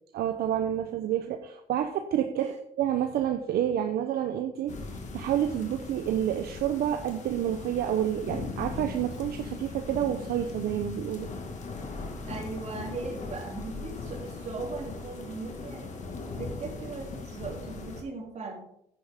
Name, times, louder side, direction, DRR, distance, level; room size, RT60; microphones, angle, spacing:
voice 1, 0.1-11.3, right 10 dB, 65° right, 6 dB, 0.8 m, -29 dB
sound 1, 4.7-18.0, left 4 dB, 45° left, 1.9 m, -39 dB
voice 2, 12.2-15.9 16.3-18.6, right 3 dB, 40° right, 0 dB, 3.0 m, -38 dB
9.6 x 9.5 x 3.6 m, 0.73 s
cardioid pair, 110°, 17 cm